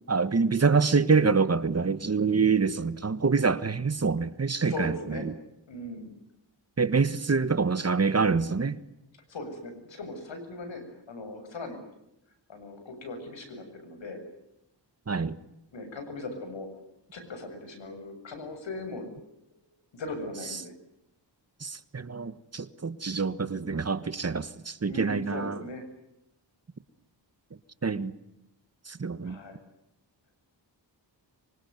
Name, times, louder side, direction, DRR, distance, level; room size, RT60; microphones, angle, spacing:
voice 1, 0.1-5.3 6.8-8.8 15.1-15.4 21.6-25.6 27.8-28.1 28.9-29.4, right 4 dB, 35° right, 1.5 m, -26 dB
voice 2, 4.7-5.2 5.7-6.1 9.3-11.8 12.5-14.2 15.7-16.7 17.1-19.1 19.9-20.7 24.8-25.8 29.2-29.6, left 2 dB, 85° left, 7.5 m, -39 dB
25.0 x 25.0 x 9.5 m
wide cardioid pair, 90°, 44 cm